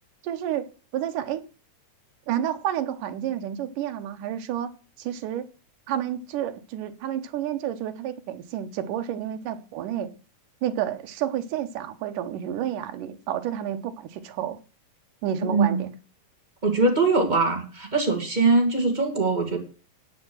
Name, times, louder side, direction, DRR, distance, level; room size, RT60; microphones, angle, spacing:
voice 1, 0.2-1.4 2.3-4.7 5.0-5.5 5.9-10.1 10.6-14.6 15.2-15.9, right 10 dB, 75° right, 2.6 m, -30 dB
voice 2, 15.4-15.8 16.6-19.6, right 3 dB, 15° right, 1.7 m, -22 dB
10.0 x 8.8 x 6.2 m
omnidirectional pair, 3.8 m